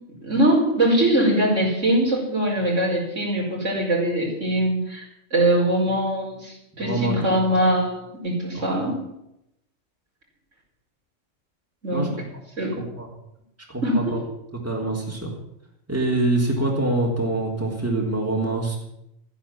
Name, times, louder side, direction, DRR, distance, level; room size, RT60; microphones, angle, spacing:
voice 1, 0.2-5.1 5.3-9.0 11.8-12.1 12.6-12.8 13.8-14.2, right 1 dB, 70° right, -3 dB, 5.6 m, -22 dB
voice 2, 6.8-7.4 8.5-8.8 11.9-12.1 13.0-13.1 13.7-14.2 14.6-15.3 15.9-18.8, right 2 dB, 10° right, -2 dB, 3.5 m, -25 dB
15.0 x 10.0 x 8.8 m, 0.81 s
omnidirectional pair, 1.3 m